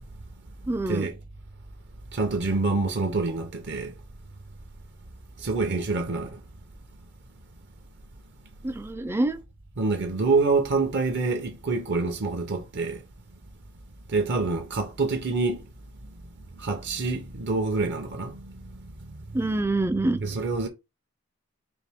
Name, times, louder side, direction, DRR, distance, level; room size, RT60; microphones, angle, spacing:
voice 1, 0.7-1.1 8.6-9.4 19.3-20.2, right 2 dB, 10° right, 0.3 m, -26 dB
voice 2, 2.1-3.9 5.4-6.4 9.8-13.0 14.1-15.6 16.6-19.3 20.2-20.7, right 3 dB, 50° right, 0.6 m, -26 dB
4.2 x 2.7 x 3.4 m
head